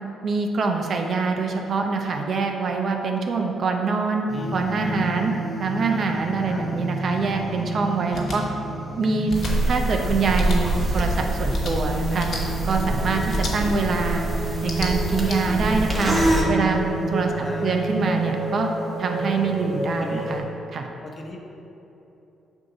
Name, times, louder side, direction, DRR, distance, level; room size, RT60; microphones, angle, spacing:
voice 1, 0.2-4.3 4.5-5.3 5.6-8.4 8.9-9.3 9.7-12.3 12.6-14.2 14.6-16.2 16.5-16.8 17.1-17.3 17.6-18.7 19.0-20.4 20.7-20.9, right 4 dB, 55° right, 3 dB, 0.6 m, -24 dB
sound 1, 4.3-20.4, right 2 dB, 10° left, 1.5 m, -30 dB
sound 2, 8.1-8.4 9.3-9.5 10.3-10.6 11.5-11.7 12.2-12.4 13.3-13.5 14.5-15.4, left 3 dB, 60° left, 1.2 m, -33 dB
sound 3, 9.3-16.4, right 1 dB, 20° right, 1.3 m, -25 dB
voice 2, 17.2-17.8 20.0-20.2 21.0-21.4, left 2 dB, 35° left, 1 dB, 0.9 m, -39 dB
8.0 x 2.8 x 5.9 m, 3.0 s
cardioid pair, 90°, 0 cm